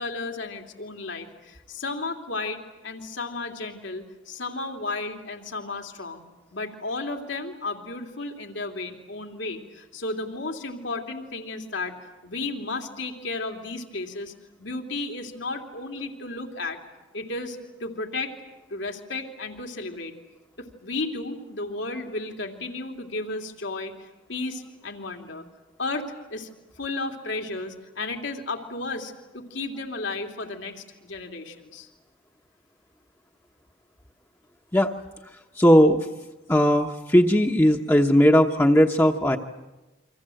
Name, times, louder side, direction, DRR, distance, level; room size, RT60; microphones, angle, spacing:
voice 1, 0.0-6.2 6.5-12.0 12.2-14.3 14.6-16.8 17.1-18.3 18.7-20.1 20.6-25.4 25.8-26.5 26.8-31.9, left 3 dB, 75° left, 3 dB, 2.9 m, -33 dB
voice 2, 35.6-36.1 36.5-39.4, equal, 15° left, 1 dB, 1.0 m, -18 dB
29.0 x 25.5 x 7.8 m, 1.1 s
head